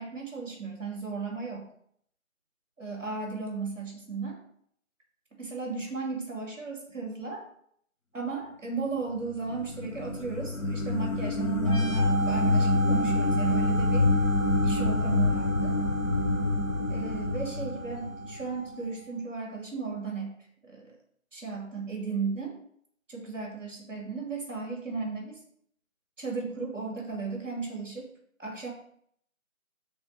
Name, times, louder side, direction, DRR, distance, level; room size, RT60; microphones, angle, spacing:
voice 1, 0.0-1.7 2.8-4.4 5.4-7.5 8.1-14.1 14.6-15.8 16.9-20.4 20.6-21.0 21.3-22.6 23.1-25.4 26.2-28.1 28.4-28.7, right 4 dB, 10° right, -1 dB, 2.0 m, -35 dB
sound 1, 9.3-18.6, left 2 dB, 75° left, 1.3 m, -26 dB
sound 2, 11.6-19.1, right 4 dB, 40° left, 2.8 m, -36 dB
8.7 x 3.5 x 6.5 m, 0.67 s
figure-of-eight pair, 165°, 41 cm